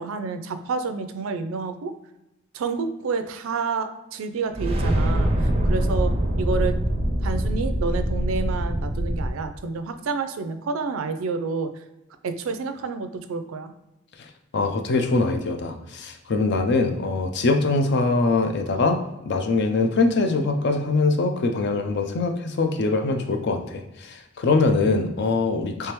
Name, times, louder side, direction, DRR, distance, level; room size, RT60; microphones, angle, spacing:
voice 1, 0.0-1.9 2.5-6.8 7.2-11.8 12.2-13.7, right 4 dB, 85° right, 9 dB, 0.4 m, -29 dB
sound 1, 4.5-9.3, right 1 dB, 30° right, 0.4 m, -23 dB
voice 2, 14.5-25.9, left 3 dB, 55° left, 5 dB, 0.4 m, -23 dB
3.4 x 3.2 x 2.9 m, 0.95 s
head